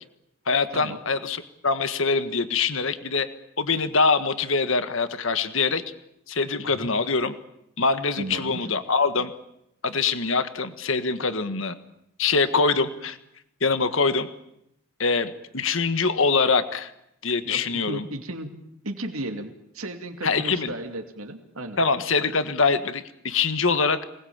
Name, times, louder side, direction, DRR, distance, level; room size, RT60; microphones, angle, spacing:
voice 1, 0.5-3.3 3.6-5.8 6.3-7.3 7.8-9.3 9.8-11.7 12.2-13.2 13.6-14.3 15.0-16.9 17.2-18.0 20.2-20.7 21.8-24.0, left 4 dB, 65° left, 11 dB, 1.5 m, -24 dB
voice 2, 8.2-8.7 17.4-17.6 17.9-18.5 18.8-21.8, right 1 dB, 80° right, 4 dB, 2.6 m, -34 dB
26.5 x 20.0 x 8.8 m, 0.78 s
head